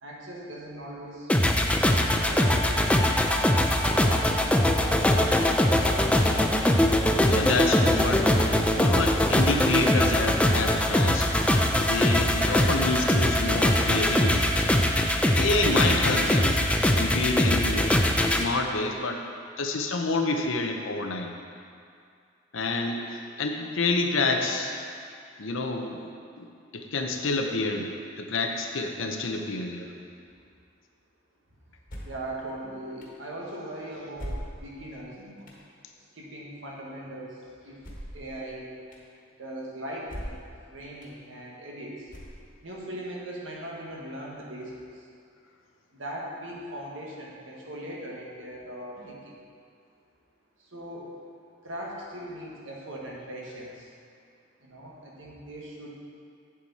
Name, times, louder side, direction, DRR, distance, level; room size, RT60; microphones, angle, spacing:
voice 1, 0.0-1.3 1.7-3.1 3.9-5.6 32.0-35.5 36.1-37.8 38.1-38.7 39.4-42.1 42.6-45.1 45.9-49.4 50.6-51.1 51.6-53.9 54.6-56.0, right 1 dB, 80° right, -3 dB, 1.6 m, -40 dB
sound 1, 1.3-18.4, left 1 dB, 5° left, 0.4 m, -22 dB
voice 2, 7.1-8.3 8.8-11.3 11.8-14.5 15.4-16.6 16.9-18.0 18.3-19.2 19.6-21.3 22.5-24.8 25.4-26.1 26.4-26.5 26.7-29.9, left 3 dB, 85° left, 3 dB, 0.8 m, -28 dB
sound 2, 31.9-32.3 33.0-33.1 34.2-34.8 35.5-35.6 37.8-38.3 38.9-39.0 40.0-40.5 41.0-41.1 42.1-42.6, equal, 45° left, 1.5 m, -39 dB
8.4 x 7.5 x 4.2 m, 2.3 s
head